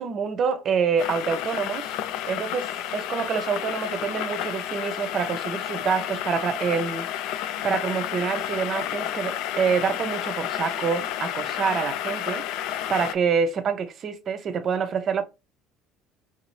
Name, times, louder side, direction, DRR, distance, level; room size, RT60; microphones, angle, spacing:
voice 1, 0.0-2.0 2.3-7.1 7.6-12.5 12.9-15.2, right 6 dB, 40° right, 0.6 m, -26 dB
sound 1, 1.0-13.1, left 11 dB, 70° left, 0.3 m, -31 dB
3.7 x 2.7 x 3.0 m
cardioid pair, 135°, 0 cm